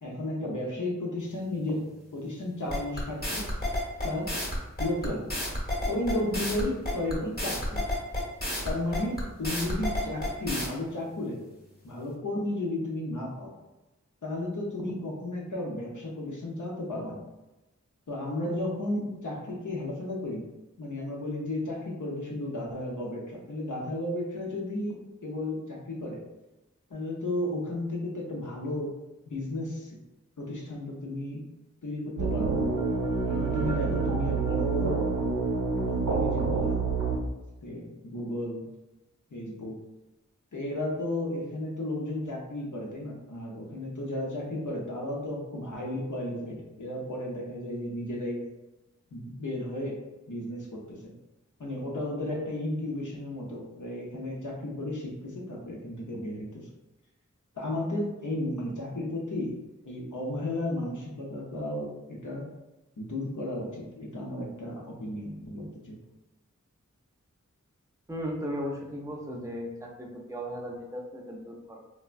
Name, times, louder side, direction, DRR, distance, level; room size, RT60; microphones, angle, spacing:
voice 1, 0.0-3.5 4.0-4.3 4.8-5.3 5.9-7.8 8.6-11.4 11.8-13.5 14.2-17.2 18.1-20.4 20.8-26.2 26.9-28.9 29.3-30.0 30.4-31.4 31.8-32.6 33.3-35.0 35.9-36.8 37.6-38.6 39.3-39.8 40.5-48.4 49.1-50.0 50.3-51.1 51.6-56.5 57.5-59.6 59.8-62.4 63.0-66.0, left 1 dB, 75° left, -2 dB, 0.7 m, -33 dB
sound 1, 2.7-10.7, left 1 dB, 30° left, 0.9 m, -30 dB
sound 2, 32.2-37.2, right 4 dB, 85° right, 0.5 m, -27 dB
voice 2, 68.1-71.8, equal, 10° right, -1 dB, 0.5 m, -36 dB
3.3 x 2.1 x 2.4 m, 1.0 s
wide cardioid pair, 50°, 31 cm